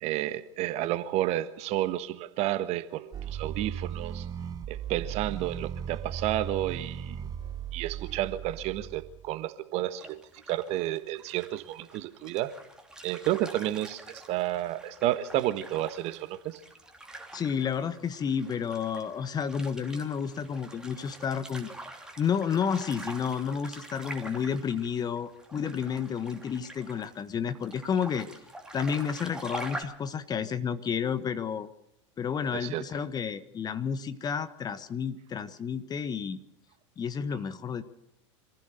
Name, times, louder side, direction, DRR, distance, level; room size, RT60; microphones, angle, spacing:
voice 1, 0.0-4.3 4.7-7.2 7.7-10.2 10.5-12.5 13.0-16.6 32.5-32.8, right 14 dB, 40° right, 1.4 m, -31 dB
sound 1, 3.1-9.3, right 9 dB, 25° right, 0.9 m, -37 dB
sound 2, 10.0-29.8, right 1 dB, 5° right, 3.1 m, -45 dB
voice 2, 17.3-21.7 22.2-28.3 28.7-31.7 32.2-36.4 37.0-37.8, left 7 dB, 25° left, 1.4 m, -31 dB
26.0 x 15.5 x 6.7 m
figure-of-eight pair, 85°, 16 cm